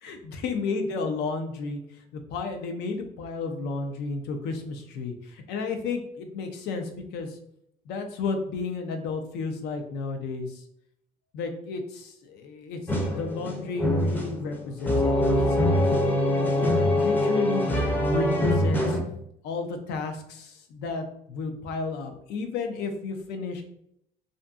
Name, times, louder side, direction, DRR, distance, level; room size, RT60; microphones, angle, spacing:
voice 1, 0.0-1.8 2.1-7.4 7.9-10.6 11.3-19.0 19.4-23.6, left 4 dB, 85° left, 5 dB, 0.5 m, -32 dB
sound 1, 12.9-19.0, left 1 dB, 10° left, 0.5 m, -24 dB
2.5 x 2.5 x 2.3 m, 0.73 s
cardioid pair, 110°, 17 cm